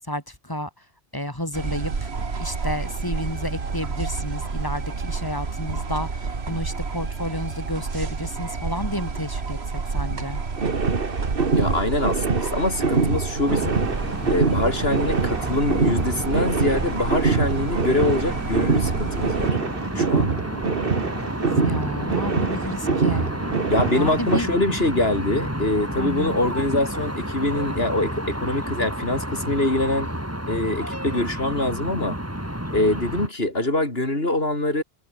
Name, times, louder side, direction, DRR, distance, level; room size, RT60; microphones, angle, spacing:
voice 1, 0.1-0.7 1.1-2.1 2.4-9.6 9.9-10.4 21.6-23.3 24.0-24.5 26.0-26.4, left 1 dB, 20° left, 5.3 m, -31 dB
sound 1, 1.5-19.5, right 4 dB, 85° right, 2.2 m, -30 dB
sound 2, 10.6-24.4, right 4 dB, 60° right, 1.9 m, -25 dB
voice 2, 11.5-13.8 14.3-19.6 19.9-20.3 23.7-30.1 30.5-32.2 32.7-34.8, left 2 dB, 70° left, 5.7 m, -24 dB
sound 3, 13.4-33.3, equal, 15° right, 5.2 m, -31 dB
omnidirectional pair, 1.0 m